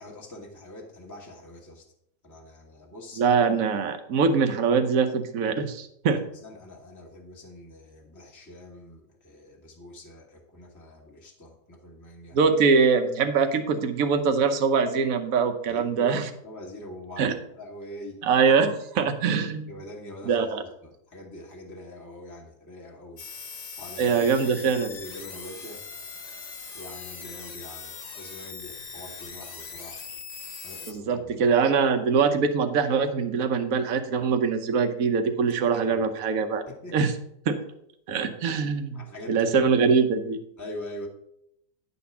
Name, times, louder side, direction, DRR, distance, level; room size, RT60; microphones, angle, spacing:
voice 1, 0.0-1.8 2.2-3.2 6.1-12.4 15.7-18.2 19.7-20.5 20.8-23.2 23.8-24.2 24.6-25.8 26.7-30.0 30.6-31.3 35.6-36.0 36.7-37.0 38.9-39.5 40.6-41.1, left 1 dB, 15° left, -1 dB, 1.2 m, -43 dB
voice 2, 3.2-6.2 12.3-16.2 17.2-17.3 18.2-19.7 20.2-20.6 24.0-24.9 30.9-36.6 36.9-37.1 37.5-37.6 38.1-39.0 39.3-40.4, right 5 dB, 75° right, 7 dB, 1.3 m, -23 dB
sound 1, 23.2-30.9, left 5 dB, 60° left, 1.4 m, -41 dB
10.5 x 4.2 x 6.9 m, 0.75 s
omnidirectional pair, 1.5 m